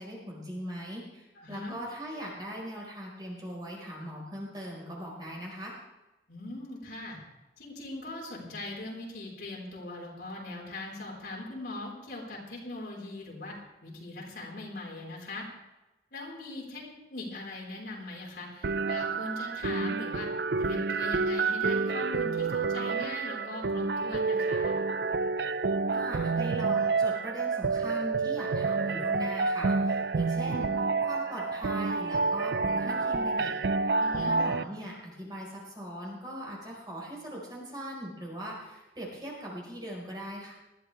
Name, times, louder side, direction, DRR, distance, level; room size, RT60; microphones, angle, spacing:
voice 1, 0.0-5.7 25.9-30.7 31.0-33.5 33.8-33.9 34.2-40.5, equal, 25° right, -3 dB, 4.7 m, -40 dB
voice 2, 1.4-1.7 6.3-7.2 7.6-15.5 16.1-20.3 20.6-24.8 34.0-34.3, left 2 dB, 65° left, -2 dB, 4.6 m, -40 dB
sound 1, 18.6-34.6, right 4 dB, 70° right, 0.5 m, -29 dB
20.0 x 14.0 x 3.4 m, 1.0 s
head